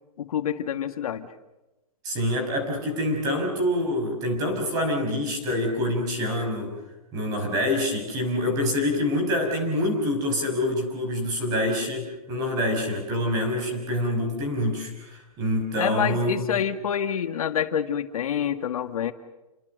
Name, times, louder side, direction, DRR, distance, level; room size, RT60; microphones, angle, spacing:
voice 1, 0.2-1.3 15.8-19.1, left 9 dB, 70° left, 7 dB, 2.0 m, -27 dB
voice 2, 2.0-6.7 7.1-16.4, left 1 dB, 20° right, 4 dB, 5.9 m, -26 dB
29.5 x 24.0 x 6.6 m, 1.0 s
hypercardioid pair, 175°, 19 cm